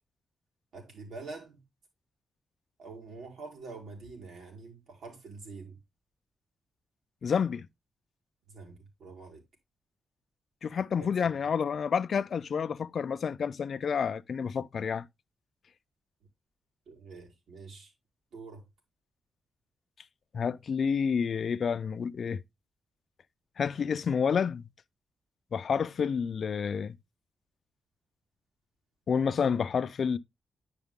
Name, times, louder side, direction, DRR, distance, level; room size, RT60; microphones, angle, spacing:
voice 1, 0.7-1.6 2.8-5.8 8.5-9.4 11.0-11.4 16.9-17.9 18.3-18.7, right 4 dB, 80° right, 3.9 m, -46 dB
voice 2, 7.2-7.7 10.6-15.1 20.3-22.4 23.6-24.6 25.5-26.9 29.1-30.2, left 6 dB, 55° left, 0.5 m, -29 dB
10.5 x 5.0 x 3.6 m
wide cardioid pair, 125°, 0 cm